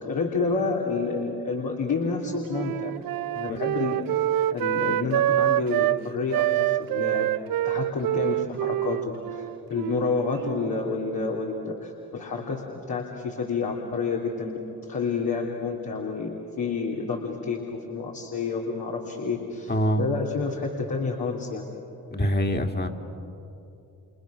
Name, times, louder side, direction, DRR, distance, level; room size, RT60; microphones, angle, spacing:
voice 1, 0.0-2.9 3.3-4.0 4.5-7.3 7.6-9.0 9.3-9.4 9.7-12.6 12.9-14.6 14.9-17.6 17.9-21.6, left 4 dB, 65° left, -2 dB, 3.3 m, -29 dB
Wind instrument woodwind instrument, 2.0-6.0 6.3-10.8, right 14 dB, 65° right, 0.5 m, -26 dB
voice 2, 19.7-20.0 22.1-22.9, equal, 25° left, 4 dB, 2.5 m, -24 dB
29.5 x 28.0 x 6.5 m, 2.9 s
supercardioid pair, 60°, 38 cm